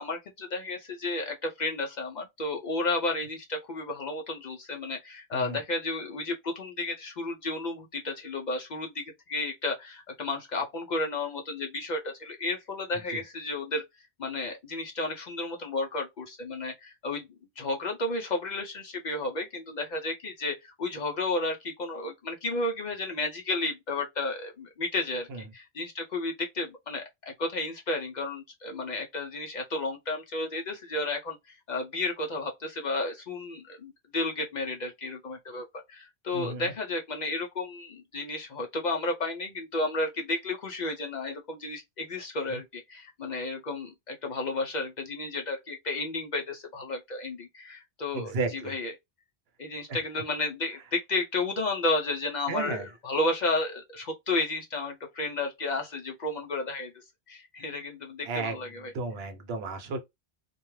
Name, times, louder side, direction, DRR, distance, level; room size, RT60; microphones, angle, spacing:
voice 1, 0.0-13.8 14.2-17.3 17.6-48.9 49.6-56.9 57.3-58.9, left 2 dB, 55° left, 0.5 m, -32 dB
voice 2, 36.3-36.7 42.5-42.6 48.1-48.7 49.9-50.0 52.5-52.9 58.2-58.6 58.9-60.0, right 3 dB, 75° right, 0.9 m, -33 dB
2.2 x 2.2 x 3.0 m
omnidirectional pair, 1.0 m